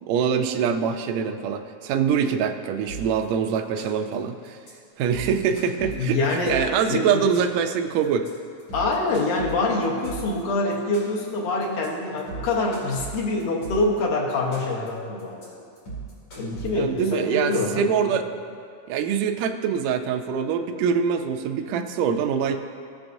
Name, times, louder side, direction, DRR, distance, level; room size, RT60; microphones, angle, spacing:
voice 1, 0.0-4.6 5.0-8.3 16.7-18.3 18.9-22.6, right 7 dB, 80° right, 5 dB, 1.7 m, -24 dB
sound 1, 2.9-3.2 3.5-4.1 4.4-4.7 5.0-6.8 7.1-7.7 8.0-8.3 8.6-10.4 10.7-11.3 11.6-11.9 12.2-14.0 14.3-14.9 15.2-15.4 15.8-17.0, right 4 dB, 55° left, 3.5 m, -37 dB
voice 2, 5.9-6.6 6.9-7.2 8.7-15.7 16.4-18.2, left 2 dB, 85° left, -2 dB, 2.7 m, -25 dB
16.5 x 6.8 x 2.6 m, 2.3 s
omnidirectional pair, 3.5 m